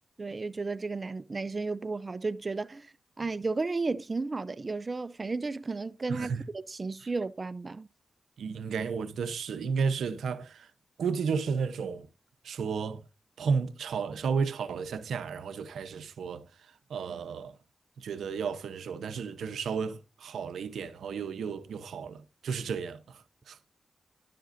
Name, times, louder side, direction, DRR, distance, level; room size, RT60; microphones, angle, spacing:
voice 1, 0.2-7.9, right 3 dB, 45° right, 0.5 m, -33 dB
voice 2, 6.1-6.4 7.0-7.1 8.4-10.7 11.0-12.1 12.4-13.0 13.4-16.4 16.9-17.5 18.0-23.6, right 5 dB, 90° right, 0.8 m, -33 dB
11.5 x 7.7 x 2.6 m
cardioid pair, 45°, 0 cm